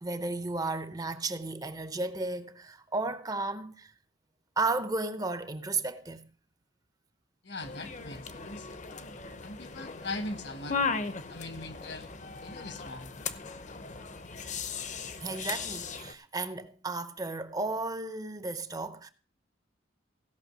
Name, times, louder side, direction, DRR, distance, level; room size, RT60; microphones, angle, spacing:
voice 1, 0.0-3.9 4.6-6.2 15.2-19.1, right 3 dB, 20° right, 0.6 m, -34 dB
voice 2, 7.4-8.7 9.4-10.8 11.3-12.1 12.4-13.2, left 2 dB, 60° left, 1.4 m, -40 dB
sound 1, 7.6-16.1, left 5 dB, 40° left, 0.8 m, -37 dB
16.0 x 5.9 x 6.1 m
head